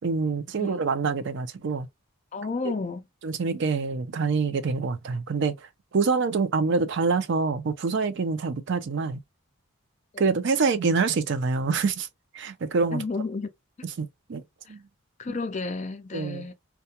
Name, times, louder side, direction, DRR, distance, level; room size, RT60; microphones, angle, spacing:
voice 1, 0.0-1.9 2.6-2.7 3.2-9.2 10.2-12.1 12.3-13.0 14.0-14.4 14.7-14.8 15.3-15.4 16.1-16.4, right 4 dB, 55° right, 0.4 m, -26 dB
voice 2, 2.3-3.1 10.1-10.4 12.9-13.5 14.6-14.8 15.2-16.5, left 3 dB, 35° left, 0.4 m, -32 dB
2.3 x 2.2 x 2.8 m
head